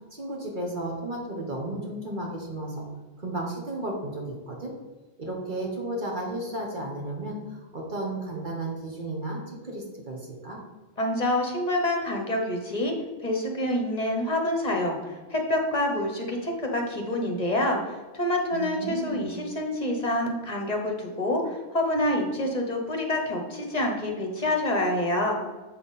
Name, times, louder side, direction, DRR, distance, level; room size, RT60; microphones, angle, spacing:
voice 1, 0.1-2.9 3.2-4.7 5.2-10.6 18.5-19.3, right 1 dB, 45° right, -1 dB, 1.4 m, -33 dB
voice 2, 11.0-12.9 13.2-25.4, left 1 dB, 40° left, 1 dB, 1.2 m, -27 dB
7.6 x 5.8 x 4.2 m, 1.3 s
omnidirectional pair, 1.1 m